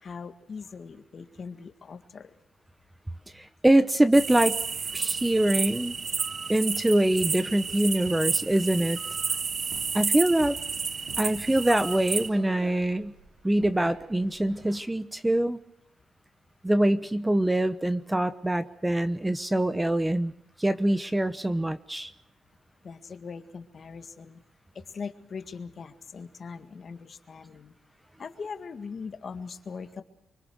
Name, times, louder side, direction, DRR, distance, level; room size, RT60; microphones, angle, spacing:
voice 1, 0.0-2.3 22.8-24.4 24.7-27.8 28.2-30.0, left 5 dB, 45° left, 9 dB, 1.9 m, -40 dB
voice 2, 3.3-4.6 4.9-6.0 6.5-9.0 9.9-10.6 11.2-13.1 13.4-15.6 16.6-20.3 20.6-22.1, right 1 dB, 10° right, 13 dB, 0.9 m, -24 dB
sound 1, 4.1-12.3, right 5 dB, 40° right, 0.8 m, -31 dB
sound 2, 9.5-14.8, right 3 dB, 65° right, 4.9 m, -48 dB
25.0 x 24.5 x 6.3 m, 0.82 s
cardioid pair, 120°, 0 cm